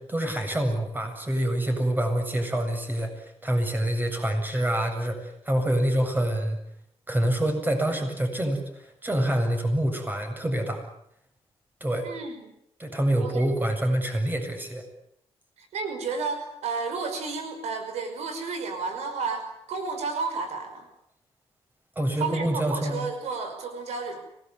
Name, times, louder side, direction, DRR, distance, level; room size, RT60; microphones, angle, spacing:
voice 1, 0.1-6.6 7.1-10.8 11.8-12.1 12.8-14.8 22.0-23.0, right 1 dB, 15° right, 5 dB, 7.9 m, -26 dB
voice 2, 12.0-12.5 13.2-13.4 15.6-20.9 22.2-24.2, right 4 dB, 90° right, 7 dB, 5.5 m, -32 dB
25.5 x 19.5 x 9.5 m, 0.75 s
cardioid pair, 85°, 11 cm